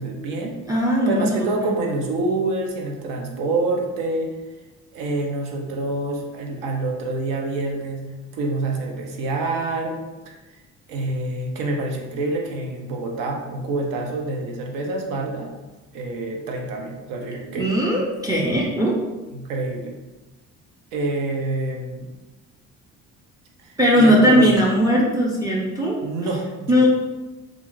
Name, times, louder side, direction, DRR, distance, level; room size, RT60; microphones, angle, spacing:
voice 1, 0.0-0.6 1.1-4.3 4.9-8.1 8.3-10.0 10.3-10.4 10.9-15.5 15.9-17.7 19.3-19.9 20.9-22.1 23.6-24.5 26.0-26.9, right 2 dB, 85° right, 2 dB, 0.6 m, -27 dB
voice 2, 0.7-1.7 17.5-19.0 23.8-26.0 26.7-26.9, equal, 10° right, -3 dB, 0.3 m, -18 dB
2.4 x 2.4 x 3.1 m, 1.1 s
cardioid pair, 120°, 32 cm